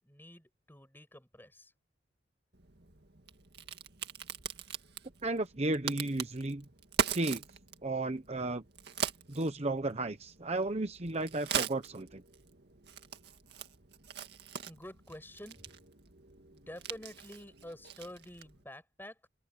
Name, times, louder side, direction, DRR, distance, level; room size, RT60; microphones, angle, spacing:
voice 1, 0.0-1.7 14.7-15.7 16.5-19.3, left 1 dB, 10° left, 7.8 m, -49 dB
Crack, 2.5-18.6, right 6 dB, 60° right, 2.1 m, -41 dB
voice 2, 5.2-6.6 7.1-7.4 7.8-8.6 9.3-12.2, right 2 dB, 35° right, 1.0 m, -33 dB
open air
head